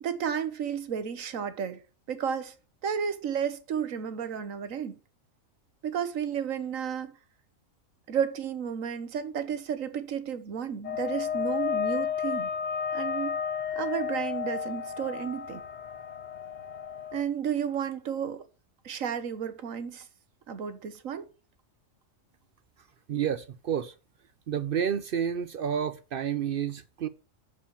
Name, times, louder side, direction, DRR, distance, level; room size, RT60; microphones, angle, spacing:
voice 1, 0.0-1.8 2.1-2.5 2.8-5.0 5.8-7.1 8.1-12.5 12.9-13.4 13.7-15.6 17.1-18.4 18.8-20.1 20.5-21.3, right 8 dB, 80° right, 1.4 m, -32 dB
sound 1, 10.8-17.2, left 7 dB, 45° left, 0.7 m, -32 dB
voice 2, 23.1-23.9 24.5-27.1, right 8 dB, 60° right, 0.6 m, -30 dB
7.0 x 4.9 x 6.9 m
omnidirectional pair, 1.4 m